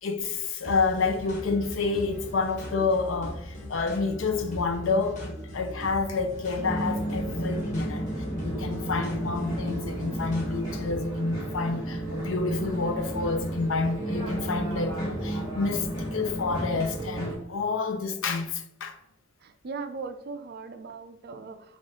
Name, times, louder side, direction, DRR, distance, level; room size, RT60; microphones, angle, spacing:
voice 1, 0.0-8.1 8.4-19.0, left 4 dB, 75° left, 0.6 m, -29 dB
sound 1, 0.6-11.0, left 1 dB, 35° left, 1.4 m, -40 dB
sound 2, 6.6-17.3, right 1 dB, 20° left, 1.3 m, -32 dB
voice 2, 19.4-21.8, right 4 dB, 50° right, 0.5 m, -39 dB
5.2 x 2.5 x 3.7 m
head